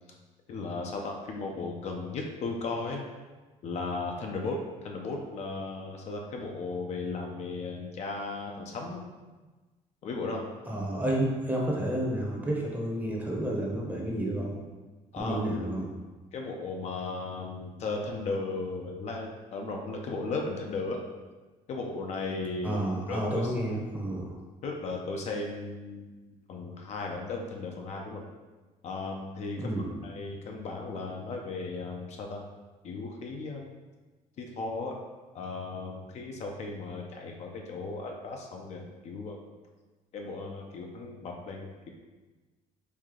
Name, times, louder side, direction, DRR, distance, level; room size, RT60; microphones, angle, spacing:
voice 1, 0.5-3.0 3.6-9.0 10.0-10.4 15.1-15.4 16.3-21.0 21.7-22.8 23.1-23.4 24.6-26.1 26.5-28.2 28.8-29.6 30.0-32.4 32.8-33.7 34.4-35.0 35.3-39.4 40.1-41.9, left 3 dB, 50° left, 1 dB, 0.5 m, -36 dB
voice 2, 10.7-14.6 15.1-15.9 22.6-24.4 29.6-30.0, right 1 dB, 10° right, -2 dB, 0.8 m, -30 dB
3.2 x 2.7 x 3.7 m, 1.2 s
cardioid pair, 115°, 14 cm